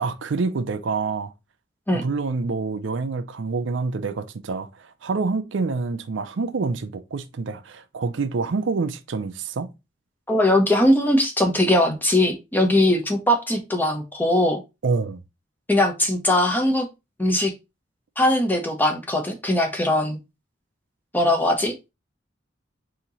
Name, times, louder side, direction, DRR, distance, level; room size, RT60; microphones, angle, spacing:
voice 1, 0.0-1.3 2.0-9.7 14.8-15.2, right 4 dB, 80° right, 0.5 m, -27 dB
voice 2, 10.3-14.6 15.7-16.9 17.2-17.5 18.2-20.2 21.1-21.7, left 1 dB, 10° left, 0.8 m, -20 dB
4.3 x 2.8 x 3.8 m
head